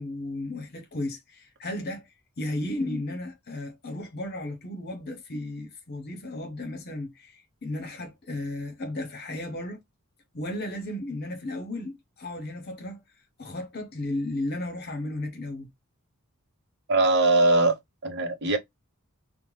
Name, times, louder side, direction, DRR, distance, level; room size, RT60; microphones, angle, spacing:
voice 1, 0.0-2.1 2.4-9.8 10.3-13.0 13.4-15.7, left 1 dB, 45° left, 0.9 m, -34 dB
voice 2, 16.9-18.6, right 2 dB, 50° right, 0.7 m, -21 dB
2.8 x 2.1 x 3.2 m
head